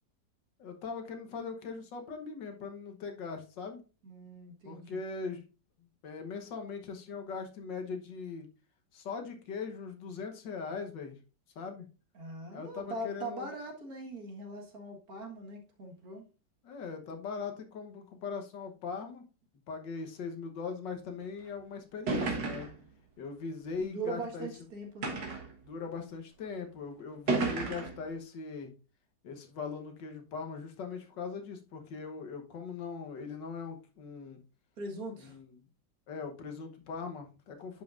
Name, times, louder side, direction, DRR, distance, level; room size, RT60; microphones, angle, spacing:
voice 1, 0.6-3.8 4.6-5.5 6.0-8.5 8.9-11.2 11.6-11.9 12.5-13.5 16.6-19.2 19.7-22.7 23.2-24.5 25.6-28.7 29.2-34.4 35.2-35.5 36.1-37.8, left 5 dB, 85° left, 5 dB, 1.8 m, -40 dB
voice 2, 4.0-5.0 12.1-16.3 23.8-25.3 34.8-35.4, right 2 dB, 55° right, 2 dB, 2.1 m, -41 dB
sound 1, 21.4-21.5 22.1-22.8 23.7-23.8 25.0-25.5 26.4-26.5 27.3-28.0, right 3 dB, 80° right, 2.1 m, -32 dB
11.0 x 5.4 x 2.5 m, 0.33 s
omnidirectional pair, 1.9 m